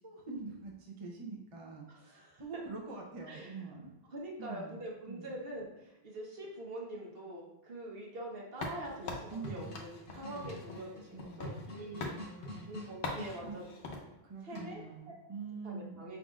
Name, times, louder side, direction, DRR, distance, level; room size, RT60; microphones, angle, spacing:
voice 1, 0.0-3.9 4.4-4.8 5.1-5.4 9.3-9.7 10.1-12.8 13.4-13.6 14.2-16.0, right 3 dB, 35° right, -1 dB, 0.6 m, -46 dB
voice 2, 1.9-2.4 3.3-3.5 4.1-12.2 12.6-14.0 14.4-14.8 15.1-15.2 15.6-16.2, right 1 dB, 60° right, -1 dB, 1.1 m, -44 dB
sound 1, 8.6-11.7 12.0-12.2 13.0-14.0, left 3 dB, 60° left, 0.8 m, -43 dB
sound 2, 9.0-13.4 14.5-15.0, left 1 dB, 90° left, 1.3 m, -46 dB
5.2 x 3.9 x 2.4 m, 0.94 s
omnidirectional pair, 1.1 m